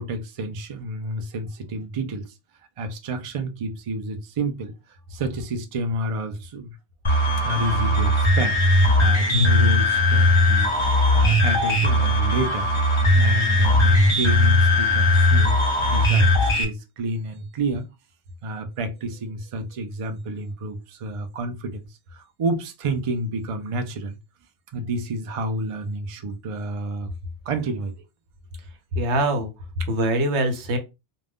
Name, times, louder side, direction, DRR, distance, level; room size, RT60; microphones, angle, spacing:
voice 1, 0.0-2.3 2.8-4.7 5.1-6.7 7.4-10.7 11.1-17.8 18.4-21.9 22.1-24.2 24.7-27.1 27.5-27.9 29.8-29.9, right 1 dB, 55° right, 0.3 m, -29 dB
sound 1, 7.0-16.6, left 1 dB, 30° left, 0.7 m, -19 dB
voice 2, 28.9-29.5 29.9-30.8, right 1 dB, 80° right, 1.0 m, -23 dB
2.5 x 2.1 x 3.4 m
omnidirectional pair, 1.1 m